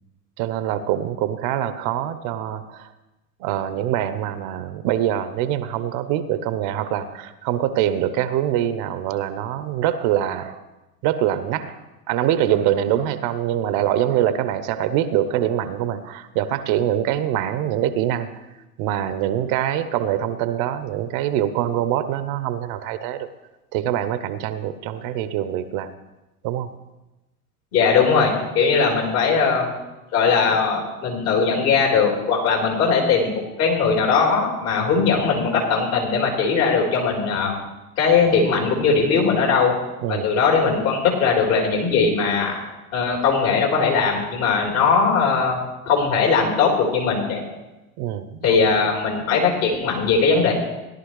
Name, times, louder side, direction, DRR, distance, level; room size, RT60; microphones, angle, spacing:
voice 1, 0.4-2.9 3.4-10.6 11.0-18.3 18.8-23.3 23.7-25.9 26.4-26.7 40.0-40.3 48.0-48.6 48.8-48.9, right 11 dB, 50° right, 12 dB, 0.9 m, -24 dB
voice 2, 27.7-29.8 30.1-37.5 38.0-39.7 40.1-42.5 42.9-45.6 45.9-47.4 48.4-50.5, left 5 dB, 65° left, -2 dB, 4.1 m, -19 dB
17.0 x 11.0 x 3.2 m, 1.0 s
hypercardioid pair, 75°, 46 cm